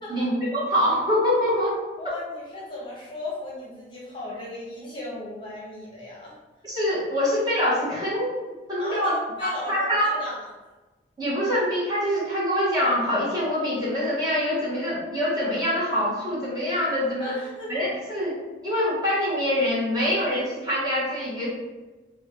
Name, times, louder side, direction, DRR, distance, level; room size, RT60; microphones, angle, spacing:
voice 1, 0.1-1.8 6.6-8.4 8.7-9.1 9.4-10.1 11.2-17.4 17.7-21.5, equal, 25° right, -8 dB, 1.0 m, -25 dB
voice 2, 2.0-6.4 8.8-10.5 17.2-17.7, left 2 dB, 30° left, -6 dB, 0.8 m, -37 dB
3.6 x 2.2 x 3.0 m, 1.2 s
head